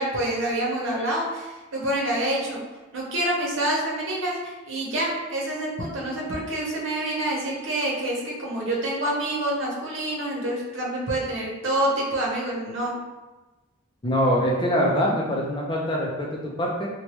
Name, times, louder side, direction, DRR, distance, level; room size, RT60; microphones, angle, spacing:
voice 1, 0.0-2.6 2.9-12.9, right 1 dB, 75° right, -4 dB, 0.9 m, -27 dB
voice 2, 14.0-16.9, equal, 25° left, -2 dB, 0.5 m, -24 dB
3.0 x 2.2 x 3.0 m, 1.1 s
head